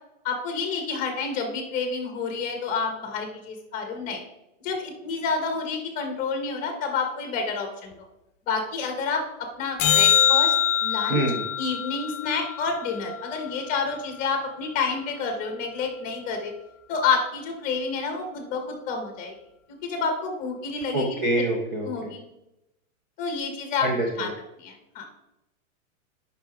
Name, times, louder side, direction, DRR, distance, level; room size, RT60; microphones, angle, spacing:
voice 1, 0.2-4.2 4.6-8.1 8.5-10.5 10.8-11.2 11.6-16.5 16.9-19.3 19.8-21.2 21.8-22.2 23.2-23.9 24.2-24.3 24.6-25.1, left 5 dB, 20° left, 4 dB, 1.4 m, -29 dB
sound 1, 9.8-14.3 20.8-20.9, left 9 dB, 35° left, 0.9 m, -24 dB
voice 2, 11.1-11.4 20.9-22.1 23.8-24.3, right 1 dB, 15° right, -1 dB, 0.5 m, -26 dB
8.6 x 5.9 x 3.6 m, 0.88 s
supercardioid pair, 165°, 40 cm